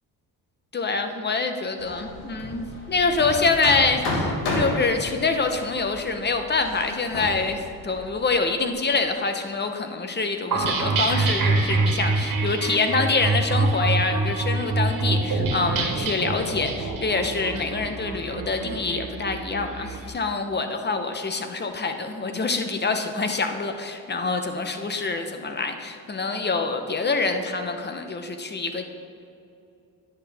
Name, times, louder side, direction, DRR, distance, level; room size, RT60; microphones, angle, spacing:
voice 1, 0.7-28.9, left 4 dB, 25° left, 6 dB, 0.9 m, -26 dB
Hammer, 1.8-8.7, left 1 dB, 90° left, 1.8 m, -32 dB
sound 1, 10.5-20.0, right 3 dB, 55° right, 1.7 m, -25 dB
10.5 x 8.1 x 3.5 m, 2.7 s
cardioid pair, 90°, 38 cm